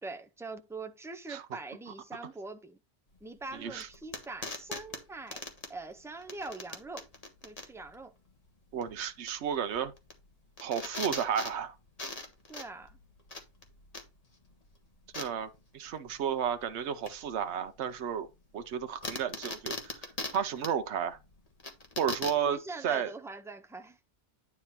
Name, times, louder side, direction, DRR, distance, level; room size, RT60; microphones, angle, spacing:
voice 1, 0.0-2.8 3.2-5.4 5.7-7.1 7.4-8.1 12.5-13.0 22.4-24.0, right 3 dB, 5° right, 0.4 m, -43 dB
sound 1, 3.1-22.5, left 2 dB, 35° left, 1.4 m, -42 dB
voice 2, 3.5-3.9 8.7-9.9 10.6-11.7 15.1-18.3 18.5-20.0 20.3-21.2 22.0-22.6 22.8-23.1, right 8 dB, 80° right, 1.0 m, -32 dB
9.7 x 3.7 x 4.3 m
omnidirectional pair, 1.1 m